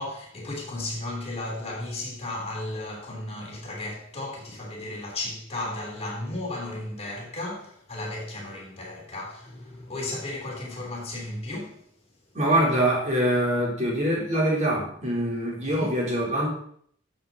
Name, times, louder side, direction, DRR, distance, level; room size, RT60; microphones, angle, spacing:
voice 1, 0.0-11.8 15.6-16.0, left 2 dB, 35° left, 3.1 m, -34 dB
voice 2, 12.3-16.5, right 1 dB, 40° right, 3.6 m, -24 dB
13.0 x 6.9 x 4.0 m
head